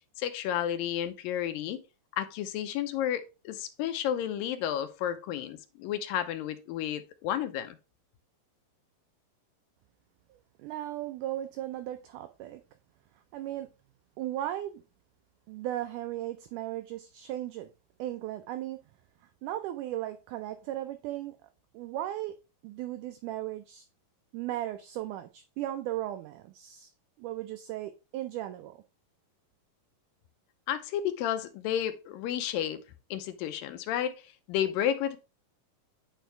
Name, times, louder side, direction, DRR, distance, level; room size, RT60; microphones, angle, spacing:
voice 1, 0.2-1.8 2.2-7.8 30.7-32.8 33.1-35.2, left 10 dB, 85° left, 2.4 m, -32 dB
voice 2, 10.3-12.6 13.3-13.7 14.2-14.8 15.5-17.7 18.0-18.8 19.2-21.5 21.7-22.4 22.6-23.9 24.3-26.9 27.2-28.8, right 13 dB, 80° right, 1.9 m, -36 dB
9.2 x 4.5 x 3.3 m
omnidirectional pair, 4.0 m